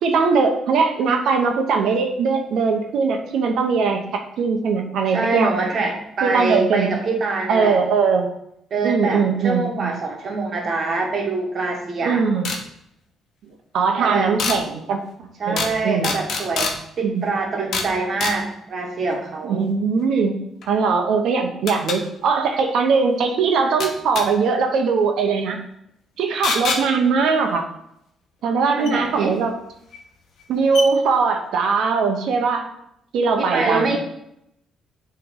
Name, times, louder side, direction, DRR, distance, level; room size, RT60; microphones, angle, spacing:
voice 1, 0.0-4.0 4.4-5.5 6.2-6.9 7.5-8.3 8.8-9.9 12.0-12.5 13.4-15.0 15.5-16.1 17.0-17.2 19.4-20.4 20.7-25.6 26.2-27.6 28.4-29.5 30.5-32.7 33.1-34.0, right 5 dB, 75° right, 4 dB, 1.0 m, -20 dB
voice 2, 5.1-7.8 8.7-12.2 14.0-14.3 15.4-19.6 28.8-29.3 33.4-34.0, right 3 dB, 55° right, 1 dB, 1.5 m, -24 dB
sound 1, 12.4-12.6 14.4-14.6 15.6-15.8 16.0-16.8 17.7-17.9 18.2-18.4 20.6-20.7 21.7-22.0 23.8-24.3 26.4-26.8 28.9-29.0 29.9-30.0 30.4-30.5 30.7-30.9, left 4 dB, 70° left, 1.0 m, -24 dB
8.0 x 3.4 x 3.9 m, 0.76 s
cardioid pair, 90°, 0 cm